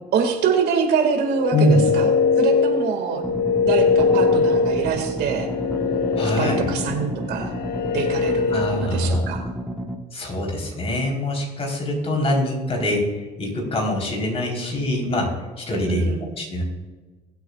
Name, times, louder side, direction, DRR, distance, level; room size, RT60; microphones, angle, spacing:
voice 1, 0.1-2.1 2.4-3.2 3.6-5.5 6.2-7.5 7.9-9.5 15.9-16.3, right 6 dB, 75° right, 4 dB, 2.2 m, -25 dB
sound 1, 1.2-9.1, left 4 dB, 65° left, 0.8 m, -22 dB
voice 2, 1.5-1.8 6.2-6.7 8.5-9.3 10.1-16.0 16.4-16.6, left 1 dB, 35° left, -1 dB, 4.0 m, -24 dB
sound 2, 3.2-10.0, right 1 dB, 5° right, 1.2 m, -32 dB
21.0 x 8.2 x 2.4 m, 1.3 s
cardioid pair, 110°, 17 cm